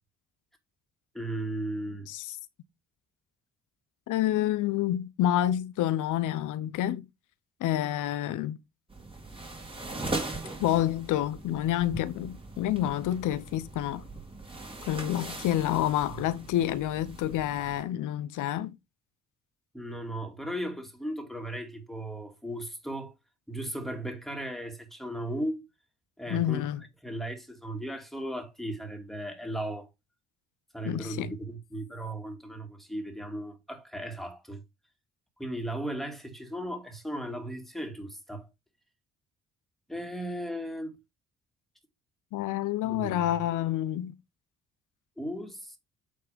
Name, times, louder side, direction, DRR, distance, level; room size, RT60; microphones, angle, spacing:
voice 1, 1.1-2.1 16.1-16.2 19.7-23.1 23.5-25.6 26.2-26.7 27.0-29.9 30.7-34.6 35.4-38.5 39.9-40.9 42.8-43.2 45.2-45.8, right 1 dB, ahead, 2.3 m, -36 dB
voice 2, 4.1-7.1 7.6-8.6 10.6-14.1 14.9-18.7 26.3-26.8 30.8-31.4 42.3-44.2, left 12 dB, 85° left, 0.9 m, -28 dB
sound 1, 8.9-17.8, right 2 dB, 15° right, 2.4 m, -40 dB
8.7 x 3.4 x 5.1 m
cardioid pair, 90°, 30 cm